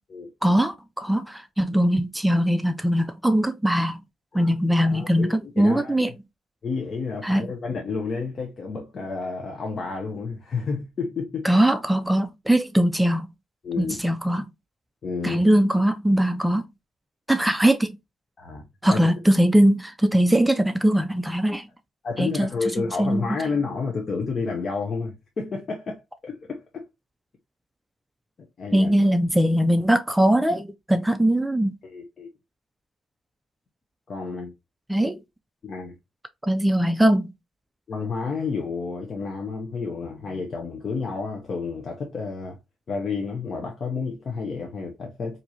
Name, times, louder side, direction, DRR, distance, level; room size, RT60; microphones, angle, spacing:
voice 1, 0.4-4.0 4.3-6.1 7.2-7.5 11.4-13.3 13.8-14.5 15.2-16.7 17.3-18.0 18.8-21.7 22.2-23.4 28.7-31.8 34.9-35.2 36.4-37.3, right 1 dB, 5° right, 0.4 m, -21 dB
voice 2, 4.3-5.9 6.6-11.5 13.6-14.0 15.0-15.4 18.4-19.0 22.0-26.8 28.6-28.9 31.8-32.3 34.1-34.5 35.6-35.9 37.9-42.6 42.9-45.4, left 4 dB, 45° left, 0.8 m, -30 dB
4.5 x 2.7 x 2.8 m
cardioid pair, 90°, 0 cm